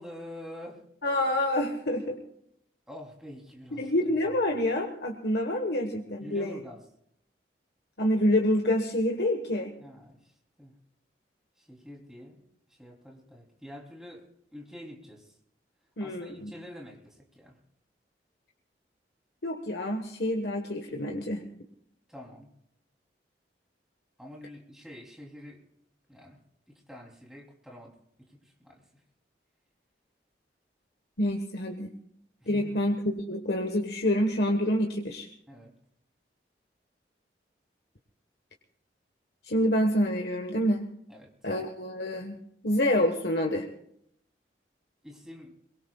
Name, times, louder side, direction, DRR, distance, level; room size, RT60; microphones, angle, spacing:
voice 1, 0.0-0.8 2.9-3.9 6.2-6.8 9.8-10.3 10.6-10.8 11.6-15.3 16.0-17.6 22.1-22.5 24.2-25.6 26.1-26.4 26.7-27.9 28.3-28.8 32.4-32.8 35.5-35.7 41.1-41.3 45.0-45.5, left 1 dB, 5° right, -1 dB, 3.2 m, -46 dB
voice 2, 1.0-2.2 3.8-6.6 8.0-9.7 16.0-16.5 19.4-21.4 31.2-31.9 32.5-35.3 39.4-40.9 41.4-42.4 42.6-43.7, left 1 dB, 65° left, 3 dB, 1.3 m, -27 dB
23.0 x 22.5 x 2.4 m, 0.72 s
head